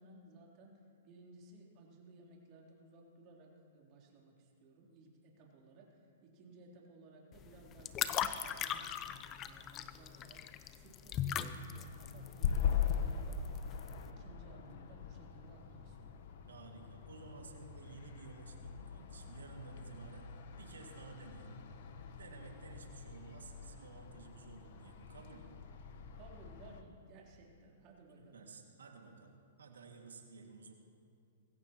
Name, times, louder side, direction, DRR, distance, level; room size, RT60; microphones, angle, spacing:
voice 1, 0.0-9.0 9.4-10.4 10.7-13.5 13.9-16.3 26.1-28.5, right 2 dB, 40° right, -2 dB, 3.5 m, -59 dB
sound 1, 7.3-14.1, left 10 dB, 30° left, 0.7 m, -40 dB
sound 2, 11.8-26.8, left 7 dB, 60° left, 1.2 m, -41 dB
voice 2, 16.5-21.7 22.2-25.5 28.1-30.7, right 4 dB, 90° right, 1 dB, 2.2 m, -54 dB
21.0 x 16.5 x 3.1 m, 2.4 s
hypercardioid pair, 135°, 0 cm